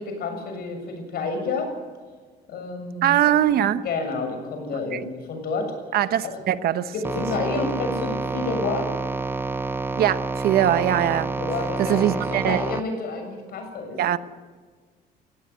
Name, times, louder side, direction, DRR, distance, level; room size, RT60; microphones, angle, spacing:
voice 1, 0.0-1.7 2.5-3.1 3.8-5.7 6.2-6.4 6.9-8.9 11.4-14.0, left 3 dB, 65° left, 6 dB, 7.1 m, -29 dB
voice 2, 3.0-3.8 4.9-5.0 5.9-6.9 10.0-11.3 11.8-12.6 14.0-14.2, right 11 dB, 65° right, 12 dB, 1.1 m, -21 dB
sound 1, 7.0-12.8, right 3 dB, 15° right, 0.7 m, -28 dB
19.5 x 17.0 x 9.5 m, 1.5 s
cardioid pair, 110°, 17 cm